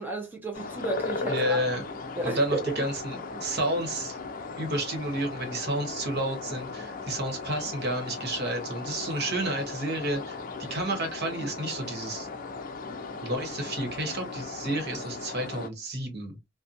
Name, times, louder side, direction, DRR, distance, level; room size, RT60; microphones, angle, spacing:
voice 1, 0.0-1.6 2.1-2.9, right 2 dB, 10° right, 0.5 m, -33 dB
sound 1, 0.5-15.7, left 4 dB, 45° left, 0.4 m, -37 dB
voice 2, 1.3-1.8 2.2-4.2 4.6-12.3 13.2-16.3, right 1 dB, 55° right, 1.1 m, -31 dB
2.8 x 2.1 x 2.5 m
head